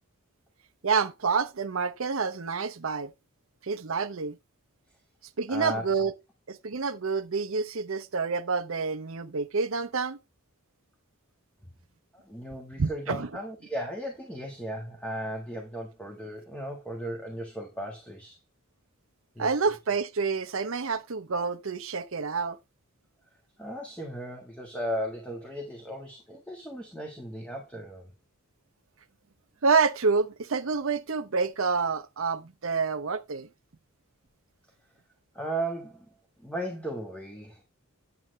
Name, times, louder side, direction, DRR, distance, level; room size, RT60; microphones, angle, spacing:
voice 1, 0.8-3.1 3.6-4.4 5.4-6.1 6.5-10.2 12.8-13.3 19.4-22.6 29.6-33.5, right 4 dB, 65° right, 0.7 m, -28 dB
voice 2, 5.5-6.0 12.1-18.4 19.3-19.6 23.6-28.1 35.3-36.1 36.4-37.6, right 1 dB, 5° left, 1.4 m, -36 dB
8.9 x 7.8 x 3.1 m
head